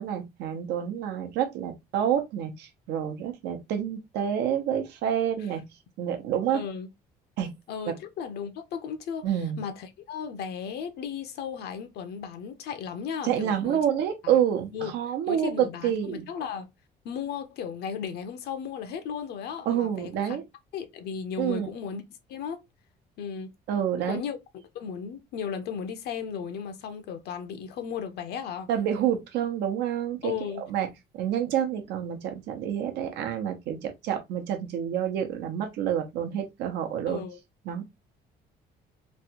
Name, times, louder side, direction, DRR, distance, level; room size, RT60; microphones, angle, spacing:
voice 1, 0.0-5.6 6.0-6.6 7.4-7.5 7.9-8.0 9.2-9.6 13.2-16.3 19.7-20.4 21.4-21.7 23.7-24.2 28.7-30.3 30.6-30.9 31.1-37.2 37.7-37.8, right 9 dB, 85° right, 0.8 m, -28 dB
voice 2, 6.5-6.9 7.7-9.3 9.6-13.8 14.2-14.4 14.7-14.9 15.3-16.7 17.0-20.4 20.7-22.0 22.3-22.6 23.2-23.5 24.0-24.4 24.7-28.7 30.2-30.6 37.1-37.4, left 7 dB, 75° left, 0.7 m, -35 dB
3.1 x 2.3 x 2.9 m
cardioid pair, 110°, 17 cm